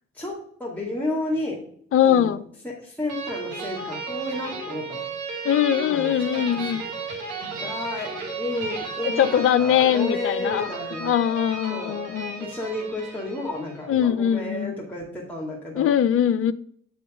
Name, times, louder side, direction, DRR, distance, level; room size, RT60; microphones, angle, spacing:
voice 1, 0.1-1.6 2.0-2.3 2.6-5.0 5.8-6.8 7.6-11.1 11.7-12.0 12.4-15.9, left 1 dB, 5° left, 2.4 m, -32 dB
voice 2, 1.9-2.4 5.4-6.8 9.0-10.7 11.0-12.5 13.9-14.8 15.8-16.5, left 9 dB, 40° left, 0.5 m, -21 dB
sound 1, 3.1-13.8, right 3 dB, 75° right, 2.2 m, -34 dB
8.7 x 5.7 x 3.7 m
figure-of-eight pair, 45°, 33 cm